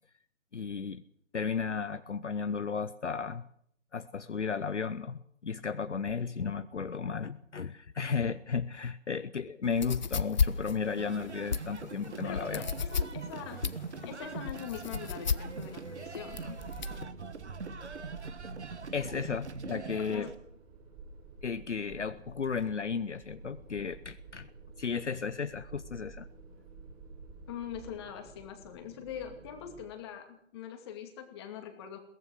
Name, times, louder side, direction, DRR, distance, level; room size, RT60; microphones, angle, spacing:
voice 1, 0.5-1.0 1.3-3.5 3.9-12.6 18.9-20.3 21.4-24.5 24.8-26.3, left 5 dB, 60° left, 12 dB, 0.9 m, -34 dB
sound 1, 9.6-17.0, left 6 dB, 35° left, 0.8 m, -33 dB
sound 2, 10.7-29.8, right 3 dB, 20° right, 7.5 m, -51 dB
sound 3, 11.0-20.3, right 5 dB, 60° right, 1.5 m, -43 dB
voice 2, 12.2-13.7 14.0-16.6 20.0-20.3 27.5-32.0, left 8 dB, 20° left, 5 dB, 2.4 m, -43 dB
22.0 x 18.0 x 6.6 m, 0.68 s
figure-of-eight pair, 145°, 39 cm